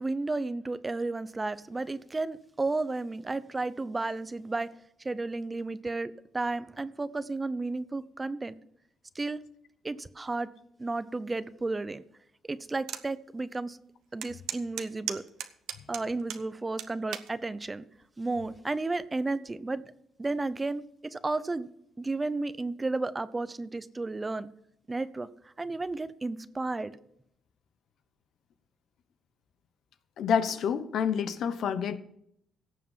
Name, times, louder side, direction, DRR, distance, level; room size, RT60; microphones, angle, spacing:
voice 1, 0.0-4.7 5.0-8.6 9.1-9.4 9.8-10.5 10.8-12.0 12.5-13.8 14.1-15.2 15.9-17.9 18.2-19.8 20.2-21.7 22.0-24.5 24.9-26.9, right 3 dB, 20° right, 15 dB, 0.7 m, -33 dB
sound 1, 12.9-13.1 13.5-13.6 14.2-16.4 16.8-17.3 18.0-18.3, right 10 dB, 85° right, 1.0 m, -36 dB
voice 2, 30.2-32.0, left 7 dB, 70° left, 12 dB, 1.0 m, -28 dB
17.0 x 7.2 x 5.7 m, 0.74 s
cardioid pair, 90°, 0 cm